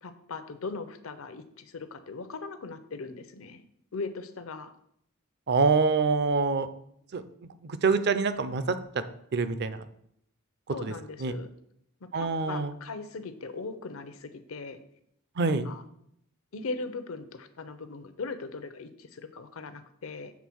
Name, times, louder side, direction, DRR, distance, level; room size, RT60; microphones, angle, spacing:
voice 1, 0.0-3.6 3.9-4.7 10.7-11.5 12.0-14.8 15.4-15.8 16.5-20.3, left 4 dB, 70° left, 10 dB, 0.7 m, -39 dB
voice 2, 5.5-6.7 7.1-7.2 7.6-9.0 9.3-9.9 10.8-10.9 11.2-11.3 12.1-12.7 15.4-15.7, right 4 dB, 50° right, 12 dB, 0.5 m, -26 dB
7.2 x 3.7 x 6.2 m, 0.72 s
head